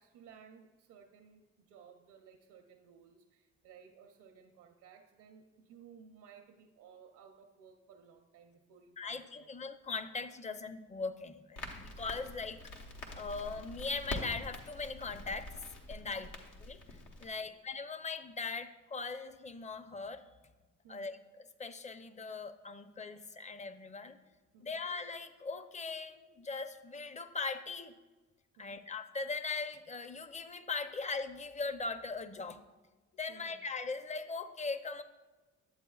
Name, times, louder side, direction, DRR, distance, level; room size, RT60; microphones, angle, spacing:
voice 1, 0.0-9.5 16.0-16.3 17.2-17.6 20.8-21.2 24.5-24.8 28.6-28.9 33.3-33.6, right 6 dB, 75° right, 3 dB, 0.6 m, -58 dB
voice 2, 9.0-12.6 13.2-15.6 15.9-16.3 16.6-20.3 20.9-21.2 21.6-24.2 24.6-27.9 28.6-32.6 33.1-35.0, left 4 dB, 25° left, 11 dB, 0.5 m, -40 dB
Crackle, 11.6-17.3, left 1 dB, 85° left, 1.1 m, -45 dB
10.5 x 7.9 x 2.3 m, 1.2 s
supercardioid pair, 65°, 31 cm